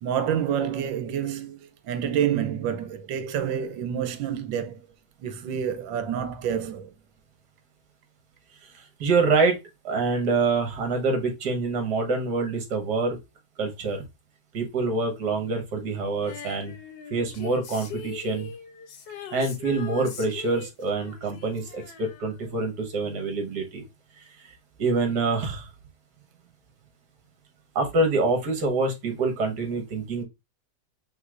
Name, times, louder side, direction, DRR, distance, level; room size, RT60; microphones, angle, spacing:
voice 1, 0.0-4.8 5.2-6.9, right 9 dB, 90° right, 1.4 m, -28 dB
voice 2, 9.0-9.6 9.8-13.2 13.6-14.0 14.5-16.7 17.1-18.5 19.3-23.8 24.8-25.7 27.8-30.2, right 3 dB, 65° right, 1.8 m, -26 dB
Female singing, 16.2-22.9 23.1-23.2, left 7 dB, 75° left, 1.4 m, -41 dB
5.2 x 3.5 x 2.5 m
omnidirectional pair, 2.0 m